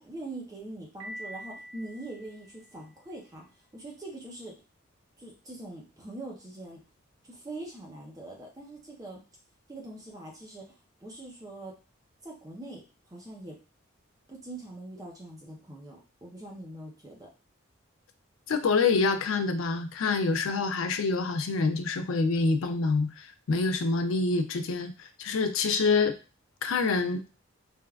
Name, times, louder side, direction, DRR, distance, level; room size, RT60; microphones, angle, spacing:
voice 1, 0.0-3.4 3.7-4.5 5.2-6.8 7.2-9.2 9.7-10.7 11.0-11.8 12.2-12.8 13.1-13.6 14.3-17.3, right 2 dB, 15° right, -1 dB, 0.5 m, -43 dB
Piano, 1.0-2.9, equal, 70° right, 1.0 m, -45 dB
voice 2, 18.5-26.1 26.6-27.2, left 4 dB, 75° left, 8 dB, 0.4 m, -26 dB
3.3 x 2.3 x 2.3 m, 0.32 s
head